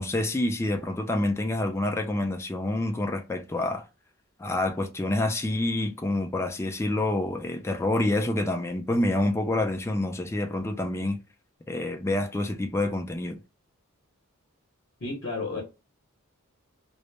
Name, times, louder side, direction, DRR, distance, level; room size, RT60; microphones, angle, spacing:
voice 1, 0.0-3.8 4.4-11.2 11.7-13.4, left 1 dB, 10° left, 0.3 m, -27 dB
voice 2, 15.0-15.6, left 3 dB, 50° left, 0.8 m, -32 dB
2.1 x 2.0 x 3.1 m
head